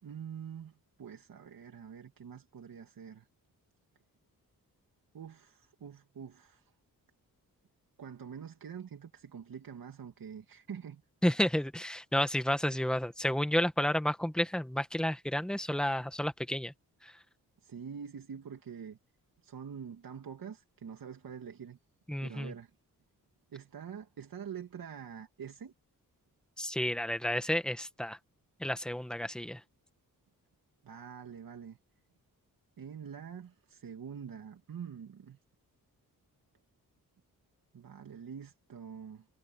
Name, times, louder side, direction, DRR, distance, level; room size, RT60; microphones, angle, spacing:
voice 1, 0.0-3.3 5.1-6.7 8.0-11.0 17.6-19.0 19.4-21.8 22.2-22.7 23.5-25.7 30.8-31.8 32.8-35.4 37.7-39.3, right 7 dB, 70° right, 2.5 m, -45 dB
voice 2, 11.2-16.7 17.0-17.2 22.1-22.5 26.6-28.2 28.6-29.6, left 1 dB, ahead, 1.7 m, -31 dB
cardioid pair, 70°, 36 cm